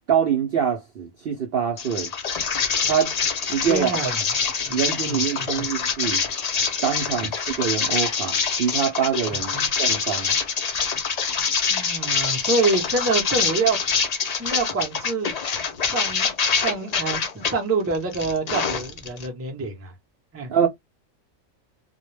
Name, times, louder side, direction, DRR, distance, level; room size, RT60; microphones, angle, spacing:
voice 1, 0.1-2.1 2.9-3.1 3.5-3.9 4.7-6.2 6.8-9.5 9.8-10.3 20.5-20.7, right 8 dB, 65° right, 0.6 m, -24 dB
sound 1, 1.8-17.5 17.9-19.3, left 5 dB, 80° left, 0.3 m, -25 dB
voice 2, 3.7-4.2 4.7-5.7 9.5-9.7 11.7-13.8 14.4-15.3 15.8-19.9 20.3-20.5, right 3 dB, 20° right, 0.4 m, -26 dB
2.2 x 2.1 x 3.1 m
omnidirectional pair, 1.4 m